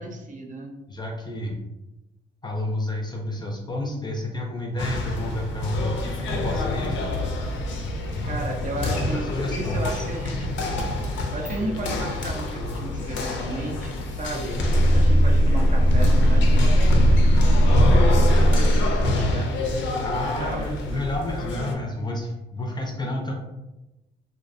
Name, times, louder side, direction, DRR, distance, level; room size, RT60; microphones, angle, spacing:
voice 1, 0.0-0.8 8.3-10.6 11.3-14.6 14.9-19.5 20.2-20.7, right 2 dB, 40° right, 1 dB, 0.5 m, -34 dB
voice 2, 0.9-1.6 2.4-6.0 6.3-7.0 8.8-10.1 20.0-23.4, left 1 dB, 20° left, 1 dB, 0.4 m, -30 dB
sound 1, 4.8-21.8, left 1 dB, 70° left, 0.5 m, -27 dB
sound 2, 14.5-19.4, equal, 85° right, 0.9 m, -18 dB
2.4 x 2.2 x 2.5 m, 0.98 s
cardioid pair, 90°, 20 cm